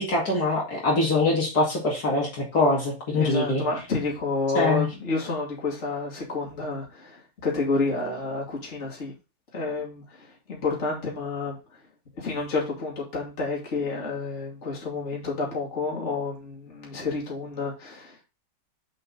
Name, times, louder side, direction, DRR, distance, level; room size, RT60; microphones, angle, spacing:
voice 1, 0.0-3.6 4.5-4.9, left 2 dB, 55° left, -3 dB, 2.8 m, -23 dB
voice 2, 3.1-9.1 9.5-11.6 12.2-18.2, left 3 dB, 40° left, -2 dB, 2.8 m, -29 dB
7.0 x 5.3 x 4.0 m, 0.29 s
omnidirectional pair, 2.0 m